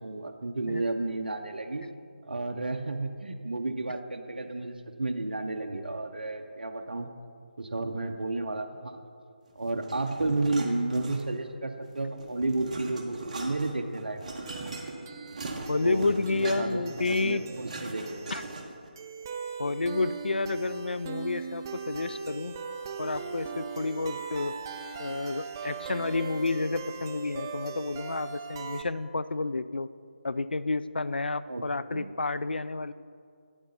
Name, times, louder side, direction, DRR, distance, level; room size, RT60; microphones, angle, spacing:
voice 1, 0.0-1.9 2.3-7.1 7.6-9.0 9.6-14.2 15.8-18.3 31.5-31.6 31.9-32.1, right 2 dB, 70° right, 5 dB, 0.6 m, -32 dB
sound 1, 9.8-11.5 11.9-18.9, right 2 dB, 45° right, 1.0 m, -40 dB
sound 2, 14.5-28.8, right 6 dB, 20° right, 0.4 m, -40 dB
voice 2, 15.7-17.4 18.3-18.4 19.6-22.5 23.0-24.5 25.0-29.9 30.2-32.9, left 3 dB, 75° left, 15 dB, 0.3 m, -30 dB
8.7 x 8.0 x 4.1 m, 2.3 s
figure-of-eight pair, 155°, 5 cm